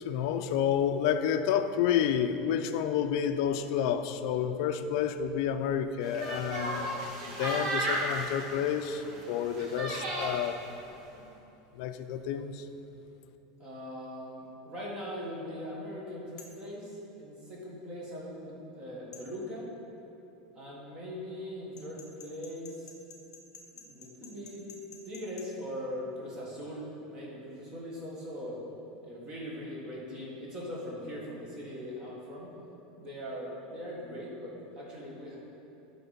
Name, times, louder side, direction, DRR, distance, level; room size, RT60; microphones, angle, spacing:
voice 1, 0.0-6.9 7.3-10.6 11.8-12.7, left 8 dB, 55° left, 9 dB, 0.4 m, -30 dB
sound 1, 6.0-10.5, right 1 dB, 65° right, 1.6 m, -34 dB
voice 2, 13.6-19.7 20.5-22.9 23.7-24.7 25.0-28.6 29.0-32.6 33.0-35.4, equal, 25° right, -5 dB, 1.5 m, -41 dB
sound 2, 16.4-16.6 19.1-19.3 21.8-25.5, left 5 dB, 20° left, 0.8 m, -50 dB
9.5 x 3.8 x 5.7 m, 2.9 s
supercardioid pair, 170°, 3 cm